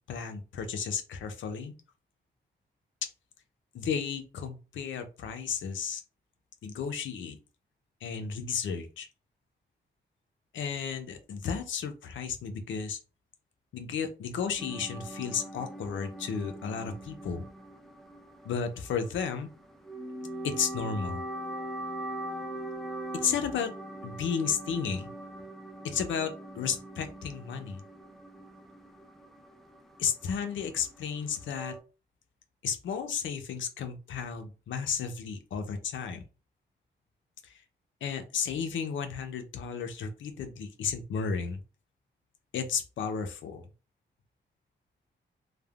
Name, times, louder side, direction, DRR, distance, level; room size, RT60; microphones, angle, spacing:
voice 1, 0.1-1.7 3.7-6.0 6.6-7.4 8.0-9.1 10.5-13.0 13.7-17.4 18.4-19.5 20.4-21.2 23.2-23.7 24.0-25.1 25.8-27.8 30.0-31.7 32.6-36.2 37.4-37.6 38.0-41.6 42.5-43.6, left 6 dB, 90° left, 7 dB, 0.5 m, -33 dB
sound 1, 14.6-31.8, right 1 dB, ahead, 0.4 m, -42 dB
3.3 x 2.1 x 2.3 m, 0.33 s
wide cardioid pair, 110°, 19 cm